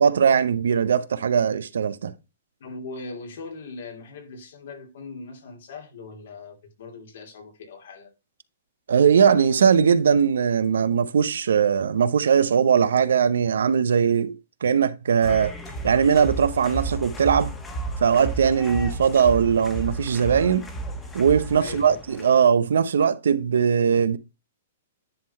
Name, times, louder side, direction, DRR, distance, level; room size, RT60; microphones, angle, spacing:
voice 1, 0.0-2.1 8.9-15.5 15.8-17.5 18.0-20.7 21.1-24.2, right 7 dB, 90° right, 0.7 m, -20 dB
voice 2, 2.6-8.1 21.6-22.0, left 3 dB, 70° left, 2.8 m, -40 dB
sound 1, 15.2-22.5, right 2 dB, 15° left, 1.3 m, -33 dB
10.5 x 3.9 x 4.2 m
hypercardioid pair, 150°, 0 cm